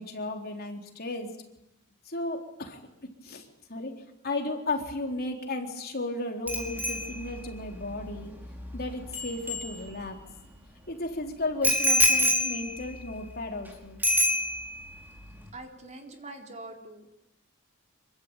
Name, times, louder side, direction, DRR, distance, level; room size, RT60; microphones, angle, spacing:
voice 1, 0.0-1.3 2.1-2.8 3.2-3.9 4.2-8.3 8.7-10.2 10.9-14.0, left 2 dB, 45° left, 3 dB, 3.8 m, -34 dB
Bicycle bell, 6.5-10.3 11.6-13.7 14.0-14.9 15.2-15.5, left 1 dB, 10° right, 5.3 m, -28 dB
voice 2, 15.5-17.1, right 2 dB, 35° right, 3 dB, 4.2 m, -44 dB
27.0 x 23.5 x 9.0 m, 0.85 s
head